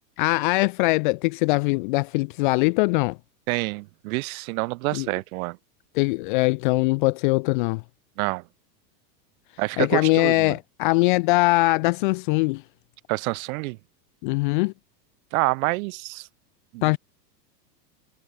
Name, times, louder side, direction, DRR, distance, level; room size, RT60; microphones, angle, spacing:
voice 1, 0.2-3.2 4.9-5.1 6.0-7.8 9.8-12.6 14.2-14.7 16.8-17.0, left 25 dB, 35° left, 0.4 m, -22 dB
voice 2, 3.5-5.6 8.2-8.4 9.6-10.6 13.1-13.8 15.3-16.3 16.7-17.0, right 23 dB, 55° right, 2.6 m, -27 dB
supercardioid pair, 140°, 50 cm